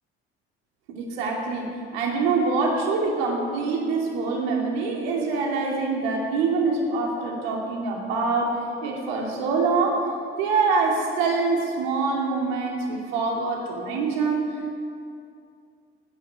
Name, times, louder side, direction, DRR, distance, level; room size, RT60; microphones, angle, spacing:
voice 1, 0.9-10.1 10.4-14.5, right 4 dB, 75° right, 0 dB, 2.8 m, -25 dB
18.5 x 10.5 x 6.4 m, 2.5 s
hypercardioid pair, 55°, 31 cm